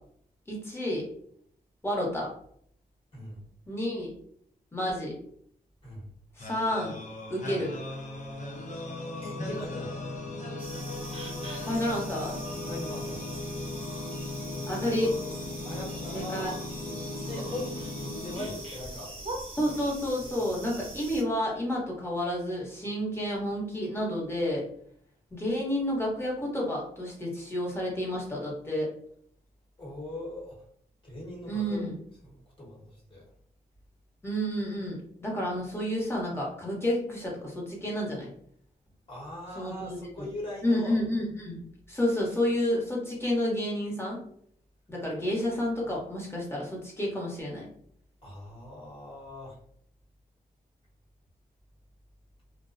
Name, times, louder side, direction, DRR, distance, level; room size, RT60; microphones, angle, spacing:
voice 1, 0.5-1.0 1.8-2.3 3.7-4.1 4.7-5.1 6.4-7.0 7.3-7.7 11.6-12.4 14.7-15.1 16.1-16.5 19.6-24.6 25.3-28.9 31.5-32.0 34.2-38.3 39.6-40.0 40.6-44.2 44.9-47.7, left 1 dB, 15° left, -4 dB, 1.0 m, -30 dB
sound 1, 6.4-19.3, left 2 dB, 50° left, 0.6 m, -37 dB
voice 2, 9.2-10.1 12.6-13.3 15.6-16.5 17.3-17.9 18.2-19.2 19.6-19.8 20.1-20.6 29.8-30.6 31.0-31.8 32.2-33.2 39.1-41.0 45.2-45.3 48.2-49.6, left 1 dB, 35° left, -6 dB, 1.2 m, -40 dB
sound 2, 10.6-21.2, right 2 dB, 35° right, 0.9 m, -43 dB
2.5 x 2.1 x 2.5 m, 0.64 s
cardioid pair, 95°, 16 cm